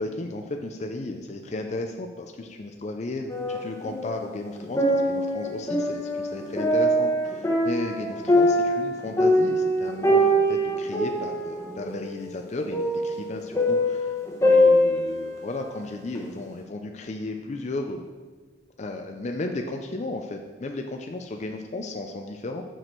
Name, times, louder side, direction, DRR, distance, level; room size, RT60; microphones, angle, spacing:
voice 1, 0.0-18.1 18.8-22.6, left 2 dB, 35° left, 4 dB, 0.4 m, -34 dB
sound 1, 3.3-4.2 4.6-15.7 16.1-16.2, equal, 15° left, 1.0 m, -23 dB
6.6 x 6.2 x 4.4 m, 1.4 s
head